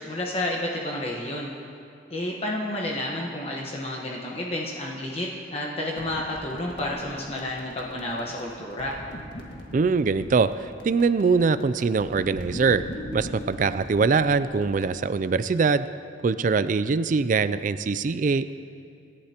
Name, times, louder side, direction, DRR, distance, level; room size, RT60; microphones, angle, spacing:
voice 1, 0.0-1.5 2.1-9.0, left 1 dB, 30° left, -3 dB, 1.2 m, -30 dB
sound 1, 5.9-15.0, equal, 60° left, 1.8 m, -41 dB
voice 2, 9.7-12.8 13.1-15.9 16.2-18.5, right 4 dB, 40° right, 13 dB, 0.3 m, -23 dB
26.5 x 11.5 x 2.9 m, 2.5 s
head